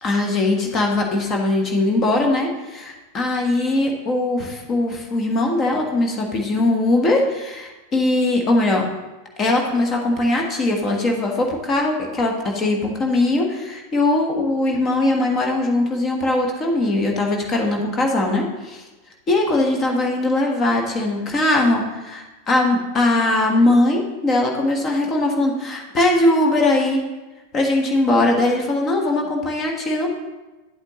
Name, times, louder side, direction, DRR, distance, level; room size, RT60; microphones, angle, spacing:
voice 1, 0.0-8.9 9.4-18.8 19.3-27.0 27.5-30.1, left 2 dB, 25° left, 2 dB, 1.4 m, -20 dB
10.5 x 8.1 x 3.1 m, 1.1 s
figure-of-eight pair, 90°, 0 cm